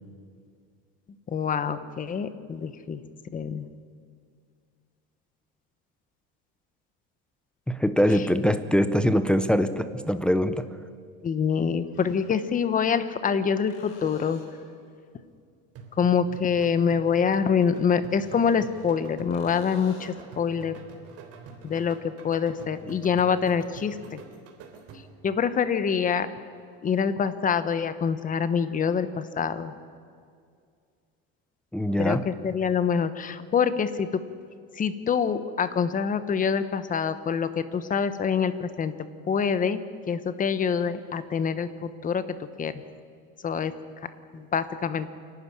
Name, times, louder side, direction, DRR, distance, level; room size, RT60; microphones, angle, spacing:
voice 1, 1.3-3.0 3.3-3.7 11.2-14.4 16.0-20.7 21.6-22.0 22.2-24.2 25.2-26.3 26.8-29.7 32.0-34.1 34.7-38.9 39.3-39.8 40.1-42.7 43.4-43.7 44.3-45.1, left 6 dB, 25° left, 12 dB, 1.1 m, -25 dB
voice 2, 7.7-10.7 31.7-32.3, equal, 5° left, 10 dB, 0.7 m, -23 dB
sound 1, 10.5-10.6 11.8-12.6 13.7-14.8 17.9-19.0 19.3-20.4 24.0-24.1, left 4 dB, 45° left, 3.7 m, -49 dB
sound 2, 15.7-25.3, right 4 dB, 55° right, 3.4 m, -46 dB
27.0 x 12.0 x 9.9 m, 2.2 s
cardioid pair, 145°, 29 cm